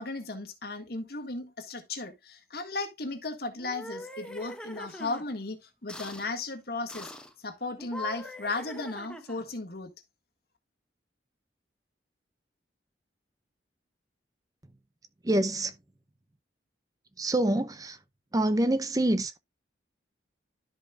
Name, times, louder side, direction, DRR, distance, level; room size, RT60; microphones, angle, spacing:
voice 1, 0.0-7.1 7.4-9.9, left 3 dB, 60° left, 1.8 m, -35 dB
sound 1, 3.5-5.2 5.9-6.3 6.9-7.3 7.8-9.5, left 1 dB, 5° left, 0.9 m, -42 dB
voice 2, 15.2-15.7 17.2-18.0 18.3-19.4, right 1 dB, 20° right, 0.6 m, -26 dB
13.0 x 5.4 x 2.4 m
head